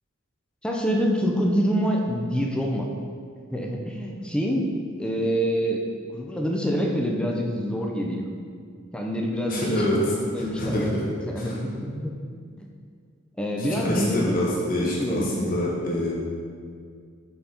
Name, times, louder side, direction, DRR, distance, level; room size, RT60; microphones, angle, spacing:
voice 1, 0.6-2.9 3.5-4.7 5.0-5.8 6.1-8.3 8.9-10.9 11.3-12.1 12.6-12.7 13.4-14.4 14.8-15.5, equal, 5° left, 0 dB, 0.5 m, -26 dB
voice 2, 9.5-10.0 10.4-11.0 11.4-11.6 13.6-16.1, left 1 dB, 45° left, -5 dB, 1.3 m, -26 dB
5.7 x 4.0 x 4.3 m, 2.1 s
head